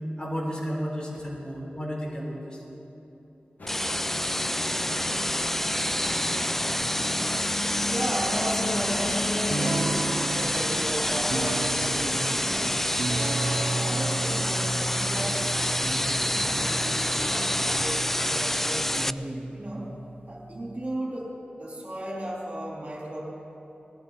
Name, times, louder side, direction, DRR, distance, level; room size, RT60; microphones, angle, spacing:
voice 1, 0.2-2.6, equal, 25° left, -3 dB, 3.8 m, -32 dB
sound 1, 3.6-17.8, left 1 dB, 60° left, 1.7 m, -36 dB
sound 2, 3.7-19.1, left 1 dB, 10° left, 0.3 m, -28 dB
voice 2, 7.9-12.8 13.6-16.1 16.5-19.9 20.3-23.2, right 1 dB, 45° right, -4 dB, 3.7 m, -35 dB
sound 3, 9.5-21.0, right 3 dB, 70° right, 0.5 m, -34 dB
19.5 x 15.5 x 4.2 m, 3.0 s
wide cardioid pair, 60°, 3 cm